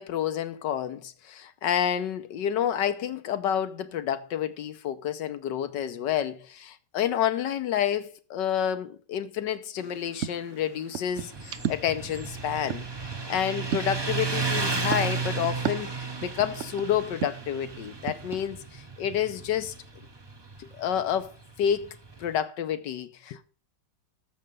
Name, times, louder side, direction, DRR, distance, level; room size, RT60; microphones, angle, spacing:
voice 1, 0.0-12.8 13.3-15.9 16.2-19.7 20.6-21.3 21.6-23.5, left 9 dB, 75° left, 1.4 m, -29 dB
sound 1, 9.8-18.5, right 9 dB, 70° right, 0.7 m, -37 dB
Motorcycle, 11.2-22.3, right 4 dB, 20° right, 0.7 m, -34 dB
13.5 x 6.5 x 5.3 m
omnidirectional pair, 2.0 m